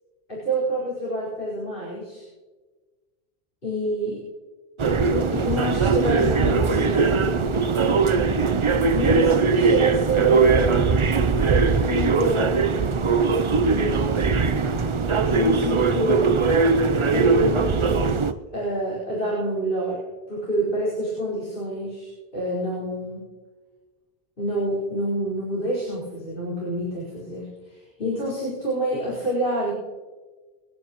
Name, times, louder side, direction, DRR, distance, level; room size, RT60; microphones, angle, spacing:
voice 1, 0.3-2.3 3.6-4.2 5.0-7.4 8.9-10.8 11.8-12.9 13.6-14.4 15.1-16.2 17.1-18.2 18.5-20.0 20.3-23.2 24.4-29.7, right 1 dB, 55° left, -8 dB, 4.8 m, -27 dB
sound 1, 4.8-18.3, right 4 dB, 40° right, 0.5 m, -20 dB
27.0 x 9.8 x 3.0 m, 1.3 s
omnidirectional pair, 1.1 m